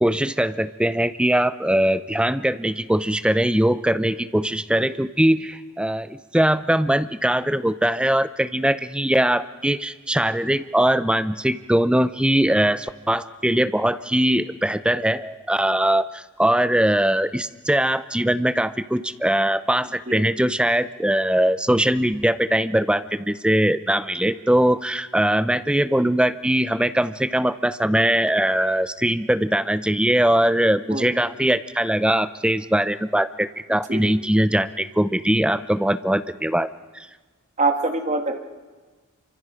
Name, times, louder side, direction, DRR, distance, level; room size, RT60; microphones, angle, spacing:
voice 1, 0.0-36.7, right 1 dB, 5° right, 12 dB, 0.6 m, -21 dB
voice 2, 30.9-31.2 33.7-34.1 37.6-38.4, right 3 dB, 35° right, 5 dB, 1.9 m, -25 dB
27.5 x 25.0 x 5.1 m, 1.4 s
head